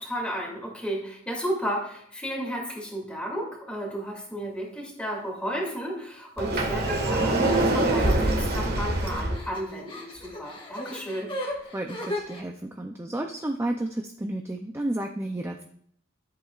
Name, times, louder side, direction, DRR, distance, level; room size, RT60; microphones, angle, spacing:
voice 1, 0.0-11.3, equal, 5° left, -2 dB, 2.4 m, -33 dB
Sliding door, 6.4-9.4, right 2 dB, 50° right, 1.6 m, -24 dB
sound 1, 7.4-12.4, left 1 dB, 25° left, 1.5 m, -36 dB
voice 2, 11.7-15.6, right 1 dB, 15° right, 3 dB, 0.5 m, -32 dB
13.5 x 8.0 x 2.4 m, 0.66 s
head